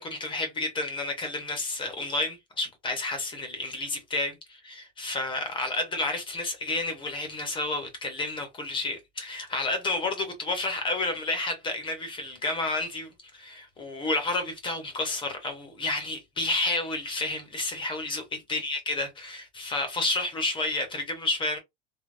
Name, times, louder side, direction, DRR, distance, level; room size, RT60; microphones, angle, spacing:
voice 1, 0.0-21.6, left 2 dB, 15° left, 0.5 m, -30 dB
3.3 x 2.0 x 2.4 m
cardioid pair, 170°, 33 cm